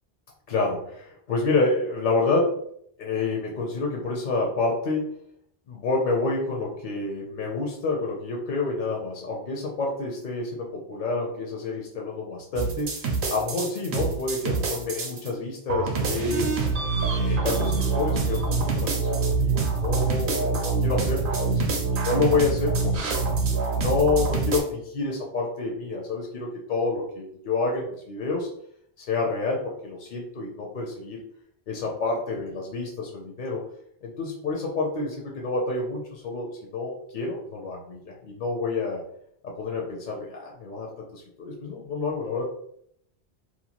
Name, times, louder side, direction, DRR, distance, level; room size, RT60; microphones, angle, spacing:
voice 1, 0.5-2.6 3.0-5.1 5.7-16.5 17.1-23.2 23.7-28.5 29.0-31.2 31.7-33.6 34.0-39.0 39.4-42.4, left 3 dB, 55° left, -1 dB, 0.6 m, -28 dB
sound 1, 12.6-15.3 15.7-24.6, right 4 dB, 60° right, 0.7 m, -25 dB
2.8 x 2.2 x 2.8 m, 0.70 s
omnidirectional pair, 1.1 m